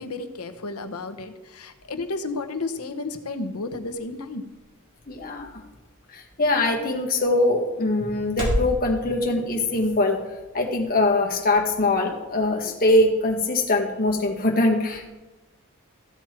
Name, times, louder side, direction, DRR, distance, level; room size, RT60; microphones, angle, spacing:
voice 1, 0.0-4.4, left 3 dB, 85° left, 8 dB, 1.0 m, -32 dB
sound 1, 2.5-8.7, left 1 dB, 40° right, 3.7 m, -35 dB
voice 2, 5.1-5.6 6.1-10.2 10.5-15.1, left 2 dB, 40° left, 0 dB, 1.8 m, -22 dB
14.5 x 7.4 x 4.5 m, 1.1 s
head